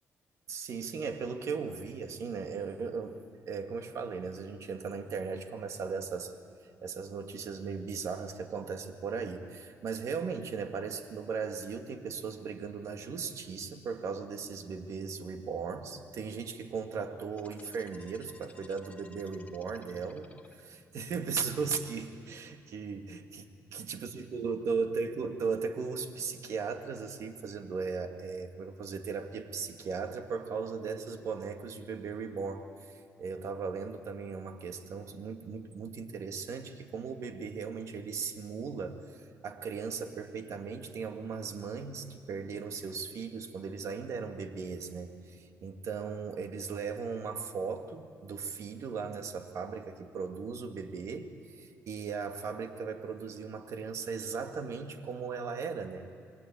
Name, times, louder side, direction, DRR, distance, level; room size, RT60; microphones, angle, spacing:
voice 1, 0.5-3.2 3.5-6.3 6.8-56.1, right 5 dB, 70° right, 6 dB, 2.1 m, -37 dB
sound 1, 17.3-20.9, left 3 dB, 25° left, 2.1 m, -56 dB
28.0 x 21.5 x 8.8 m, 2.3 s
cardioid pair, 105°, 5 cm